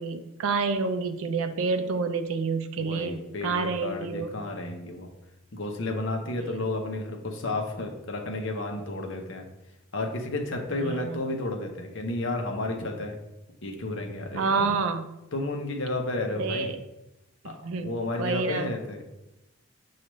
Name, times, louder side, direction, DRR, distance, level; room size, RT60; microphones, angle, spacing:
voice 1, 0.0-4.3 10.7-11.2 14.3-15.1 16.4-16.8 17.4-18.7, right 4 dB, 70° right, 9 dB, 0.4 m, -29 dB
voice 2, 2.8-5.1 5.5-9.4 9.9-13.2 13.6-14.8 15.3-16.7 17.4-19.0, left 2 dB, 55° left, 2 dB, 0.7 m, -32 dB
7.1 x 2.4 x 3.1 m, 0.94 s
head